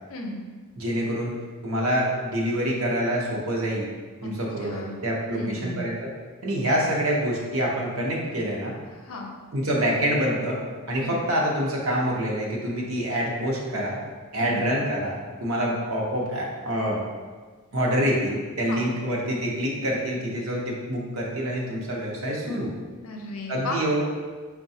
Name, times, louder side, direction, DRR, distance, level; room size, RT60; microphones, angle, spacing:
voice 1, 0.1-0.4 4.2-4.3 4.6-5.0 5.3-5.8 8.9-9.3 11.0-11.1 14.4-14.6 18.7-18.8 23.0-23.8, left 2 dB, 65° left, 1 dB, 0.6 m, -34 dB
voice 2, 0.8-1.3 1.6-3.9 4.2-5.9 6.4-8.7 9.5-10.6 10.9-14.0 14.3-17.0 17.7-22.7 23.5-24.0, equal, 65° right, -2 dB, 0.8 m, -26 dB
5.4 x 2.2 x 2.7 m, 1.4 s
head